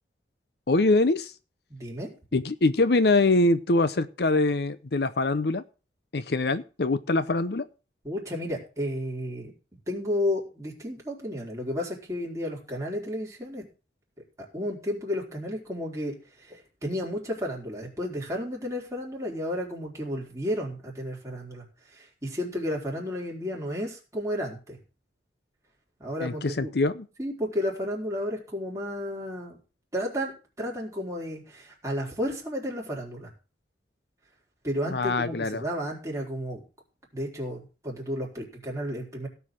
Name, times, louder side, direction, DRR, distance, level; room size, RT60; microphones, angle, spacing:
voice 1, 0.7-1.3 2.3-5.6 6.1-7.6 26.2-27.1 34.9-35.6, left 2 dB, 65° left, 14 dB, 0.7 m, -24 dB
voice 2, 1.7-2.1 8.0-9.5 9.9-13.6 14.4-24.8 26.0-26.7 27.2-29.6 29.9-33.3 34.6-36.6 37.1-39.3, equal, 15° right, -2 dB, 4.0 m, -32 dB
17.0 x 5.7 x 6.3 m, 0.34 s
head